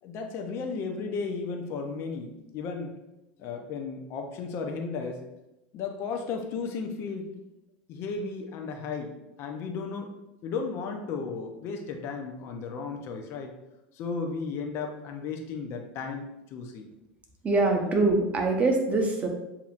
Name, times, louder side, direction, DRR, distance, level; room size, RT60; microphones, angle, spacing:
voice 1, 0.0-2.9 3.4-5.2 5.7-7.3 7.9-9.1 9.4-10.1 10.4-13.5 13.9-16.9, left 4 dB, 50° left, 4 dB, 0.7 m, -34 dB
voice 2, 17.4-19.3, right 2 dB, 25° right, 2 dB, 0.9 m, -24 dB
7.1 x 2.9 x 2.5 m, 0.92 s
hypercardioid pair, 100°, 5 cm